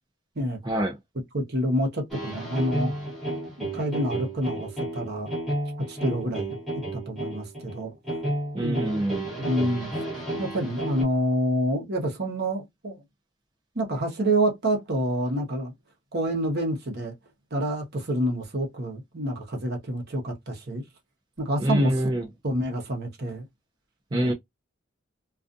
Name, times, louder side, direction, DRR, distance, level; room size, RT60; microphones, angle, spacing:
voice 1, 0.6-1.0 8.5-9.3 21.6-22.3 24.1-24.3, right 1 dB, 20° right, 0.5 m, -25 dB
voice 2, 1.3-2.9 3.6-5.3 5.8-6.6 6.9-7.9 8.6-8.9 9.4-9.9 10.4-13.0 13.7-15.7 16.1-17.1 17.5-20.8 21.4-21.9 22.4-23.5 24.1-24.3, equal, 55° right, 0.9 m, -27 dB
sound 1, 2.1-11.0, right 1 dB, ahead, 1.1 m, -32 dB
2.4 x 2.3 x 2.5 m
head